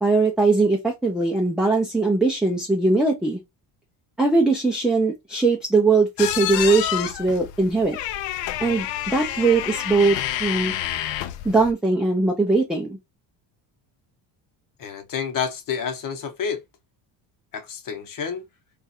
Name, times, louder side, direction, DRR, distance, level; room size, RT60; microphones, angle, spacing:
voice 1, 0.0-3.4 4.2-8.0 8.6-10.7 11.4-12.9, right 3 dB, ahead, 0.3 m, -20 dB
sound 1, 6.2-11.7, left 12 dB, 70° left, 0.5 m, -28 dB
voice 2, 14.8-16.6 17.5-18.5, left 6 dB, 45° left, 0.9 m, -29 dB
2.4 x 2.4 x 4.0 m
cardioid pair, 145°, 45 cm